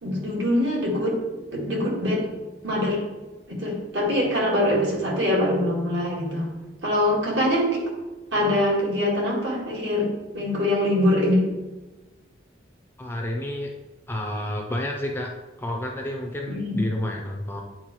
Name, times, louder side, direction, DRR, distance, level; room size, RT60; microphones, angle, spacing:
voice 1, 0.0-1.2 1.5-2.3 2.6-3.0 3.5-6.5 6.8-7.9 8.3-11.5 16.5-16.8, left 1 dB, 60° right, -3 dB, 1.9 m, -23 dB
voice 2, 13.0-13.7 14.1-15.3 15.6-17.6, left 1 dB, 10° left, 1 dB, 0.5 m, -30 dB
8.9 x 4.4 x 3.1 m, 1.2 s
head